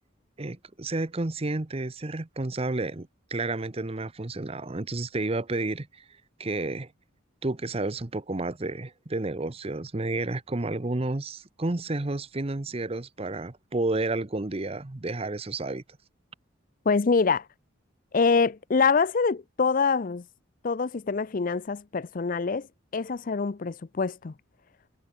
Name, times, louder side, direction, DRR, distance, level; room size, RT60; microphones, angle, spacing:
voice 1, 0.4-6.0 6.4-6.9 7.4-15.8, right 2 dB, 30° right, 0.8 m, -31 dB
voice 2, 16.9-17.5 18.1-20.3 20.6-22.7 22.9-24.3, left 4 dB, 45° left, 0.5 m, -25 dB
head